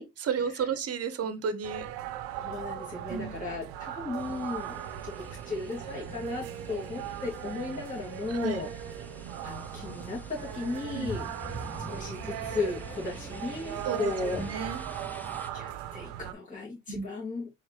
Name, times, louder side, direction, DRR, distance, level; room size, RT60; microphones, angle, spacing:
voice 1, 0.2-1.9 3.1-3.3 8.3-8.7 10.9-11.1 13.8-14.8 16.9-17.1, right 6 dB, 45° right, 0.9 m, -32 dB
sound 1, 1.6-16.3, right 11 dB, 80° right, 0.7 m, -39 dB
voice 2, 2.3-8.7 9.4-11.3 11.9-14.4 15.5-17.5, left 3 dB, 25° left, 2.4 m, -35 dB
sound 2, 4.2-15.5, left 1 dB, 5° left, 0.7 m, -46 dB
4.6 x 3.3 x 3.0 m
supercardioid pair, 80°, 34 cm